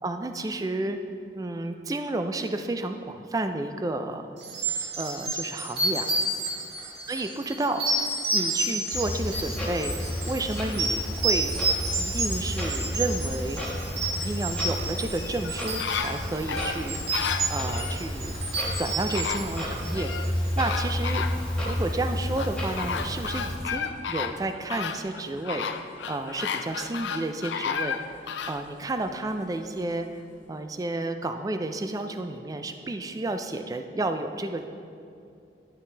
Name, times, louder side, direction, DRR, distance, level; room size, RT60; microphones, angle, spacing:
voice 1, 0.0-1.0 1.3-4.3 5.0-6.1 7.1-10.0 10.2-11.6 12.0-13.6 14.1-18.3 18.7-21.2 21.6-25.7 26.1-28.0 28.5-30.2 30.5-34.6, right 2 dB, 20° right, 7 dB, 0.3 m, -31 dB
sound 1, 4.4-20.2, right 2 dB, 65° right, 1.7 m, -30 dB
Clock, 8.9-23.6, equal, 5° left, 1.3 m, -32 dB
sound 2, 15.1-18.0 18.8-18.9 19.1-20.3 20.6-21.8 22.4-28.6 29.1-29.2, left 6 dB, 85° left, 0.4 m, -33 dB
10.5 x 5.8 x 3.3 m, 2.5 s
head